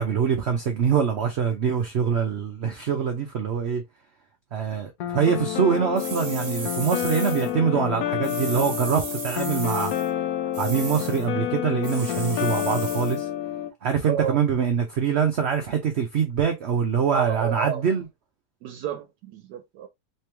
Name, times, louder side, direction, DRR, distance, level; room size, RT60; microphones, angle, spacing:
voice 1, 0.0-3.8 4.5-9.9 10.6-13.3 13.8-18.1, right 7 dB, 60° right, 0.7 m, -24 dB
plucked sadly, 5.0-13.7, left 11 dB, 70° left, 1.0 m, -29 dB
sound 1, 6.0-7.5 8.2-10.1 10.5-11.3 11.8-13.2, right 4 dB, 40° right, 1.3 m, -36 dB
voice 2, 14.1-14.4 17.1-17.8 18.6-19.9, right 10 dB, 85° right, 1.2 m, -30 dB
3.4 x 3.0 x 3.2 m
omnidirectional pair, 1.7 m